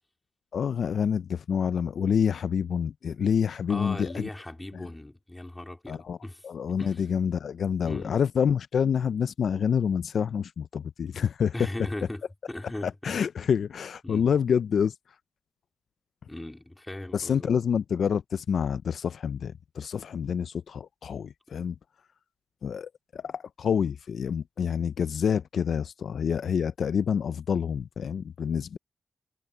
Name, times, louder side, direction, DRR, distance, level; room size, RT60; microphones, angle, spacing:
voice 1, 0.5-4.3 4.7-4.9 5.9-6.2 6.4-11.5 12.8-14.9 17.1-21.8 22.6-28.8, left 7 dB, 80° left, 0.4 m, -27 dB
voice 2, 3.7-6.4 6.8-7.0 7.8-8.2 11.5-12.2 12.5-13.2 14.0-14.3 16.3-17.5, left 1 dB, 15° left, 3.3 m, -38 dB
wide cardioid pair, 110°, 0 cm